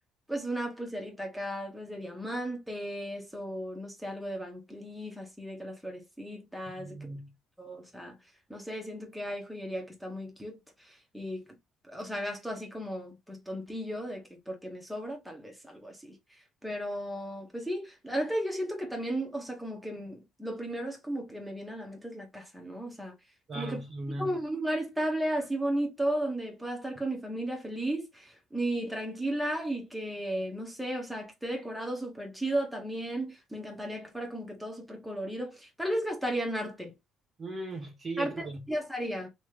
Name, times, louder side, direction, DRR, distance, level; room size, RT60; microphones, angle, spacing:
voice 1, 0.3-7.0 7.6-8.1 8.5-11.4 11.8-16.2 16.6-23.1 23.5-23.8 24.2-36.9 38.2-38.3 38.7-39.3, right 1 dB, ahead, 1.2 m, -35 dB
voice 2, 6.8-7.3 23.5-24.4 37.4-38.6, right 2 dB, 30° right, 0.9 m, -38 dB
3.1 x 3.1 x 3.2 m
cardioid pair, 130°, 0 cm